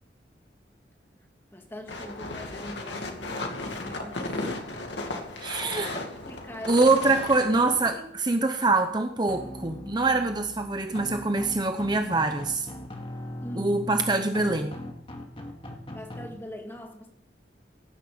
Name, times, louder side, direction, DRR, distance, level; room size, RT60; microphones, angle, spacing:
voice 1, 1.5-3.4 3.8-4.7 6.2-6.9 7.9-8.1 13.4-13.8 15.9-17.1, equal, 15° left, 1.9 m, -42 dB
sound 1, 1.9-7.9, left 2 dB, 90° left, 2.3 m, -35 dB
voice 2, 5.4-6.0 6.7-12.7 13.6-14.8, right 3 dB, 25° right, 0.8 m, -24 dB
sound 2, 9.3-16.3, left 1 dB, 30° left, 2.0 m, -40 dB
17.5 x 10.0 x 5.2 m
head